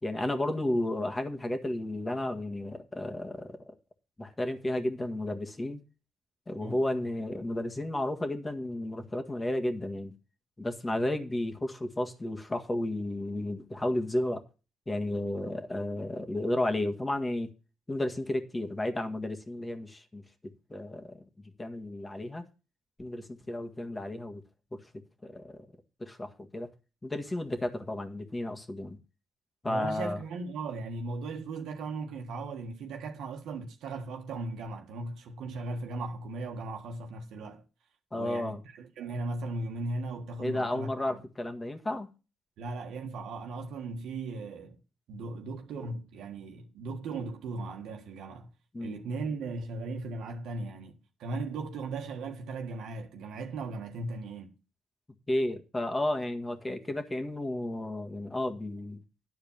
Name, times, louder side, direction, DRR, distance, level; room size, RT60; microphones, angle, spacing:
voice 1, 0.0-3.7 4.2-5.8 6.5-10.1 10.6-14.4 14.9-17.5 17.9-20.2 20.7-22.4 23.0-24.4 24.7-24.8 25.2-25.6 26.0-26.7 27.0-29.0 29.6-30.2 38.1-38.6 40.4-42.1 48.7-49.0 55.3-59.0, left 1 dB, 20° left, 1.7 m, -32 dB
voice 2, 29.6-37.6 38.1-41.2 42.6-44.8 45.1-48.5 48.8-54.5, right 3 dB, 80° right, 1.5 m, -37 dB
11.0 x 4.8 x 7.2 m
cardioid pair, 90°, 0 cm